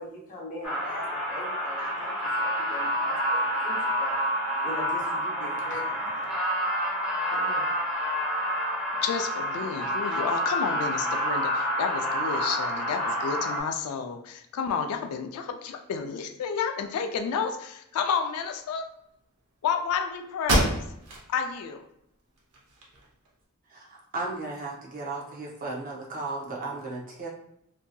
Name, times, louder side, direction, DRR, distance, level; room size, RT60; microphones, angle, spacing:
voice 1, 0.0-4.2 4.6-6.2 7.3-7.6, left 1 dB, 35° left, -2 dB, 0.7 m, -41 dB
sound 1, 0.6-13.6, equal, 5° right, 1.0 m, -28 dB
voice 2, 9.0-18.9 19.6-20.8 21.3-21.8, left 6 dB, 85° left, 6 dB, 0.3 m, -30 dB
sound 2, 19.9-20.0 20.4-21.3 21.7-21.8 22.4-23.3, right 1 dB, 85° right, 0.7 m, -27 dB
voice 3, 23.7-27.3, right 2 dB, 40° right, -3 dB, 0.6 m, -35 dB
2.6 x 2.6 x 2.2 m, 0.77 s
head